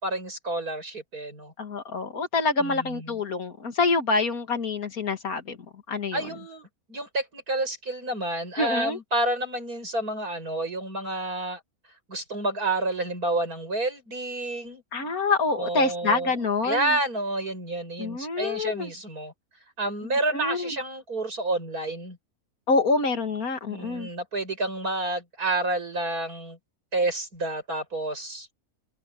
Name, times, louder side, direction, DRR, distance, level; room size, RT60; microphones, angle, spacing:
voice 1, 0.0-1.5 2.6-3.2 6.1-11.6 12.1-14.8 15.5-16.3 16.6-19.3 19.8-22.2 23.7-26.6 26.9-28.5, right 2 dB, 80° right, 7.7 m, -29 dB
voice 2, 1.6-5.6 5.9-6.2 8.6-9.0 14.9-16.9 18.0-18.9 20.3-20.7 22.7-24.1, left 3 dB, 75° left, 2.5 m, -26 dB
omnidirectional pair, 1.6 m